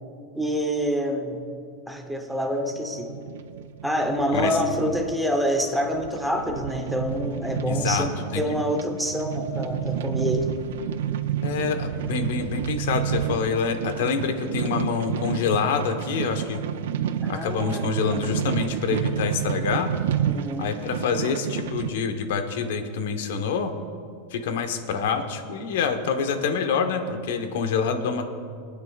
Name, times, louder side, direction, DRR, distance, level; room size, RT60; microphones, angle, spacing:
voice 1, 0.3-1.4 1.9-3.1 3.8-10.5 17.2-18.3 20.3-20.7, equal, ahead, 2 dB, 0.9 m, -27 dB
sound 1, 2.6-21.9, right 9 dB, 90° right, 0.5 m, -30 dB
voice 2, 7.7-8.4 11.4-16.6 17.3-19.9 20.6-23.7 24.3-28.3, left 5 dB, 70° left, 7 dB, 1.1 m, -26 dB
24.5 x 9.5 x 2.4 m, 2.4 s
supercardioid pair, 170°, 0 cm